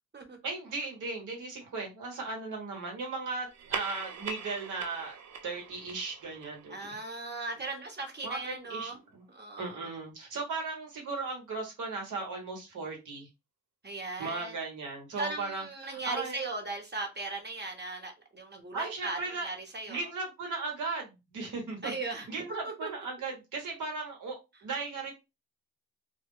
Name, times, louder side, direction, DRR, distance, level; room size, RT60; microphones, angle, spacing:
voice 1, 0.4-5.2 5.4-6.7 8.2-9.2 9.6-13.3 14.2-16.4 18.7-19.5 19.9-25.1, right 3 dB, 85° right, 1.2 m, -37 dB
sound 1, 3.5-8.3, right 6 dB, 60° right, 0.5 m, -43 dB
voice 2, 6.7-9.0 9.3-9.9 13.8-14.5 15.2-20.1 21.8-22.9, right 3 dB, 35° right, 1.0 m, -38 dB
2.3 x 2.0 x 3.6 m
cardioid pair, 55°, 30 cm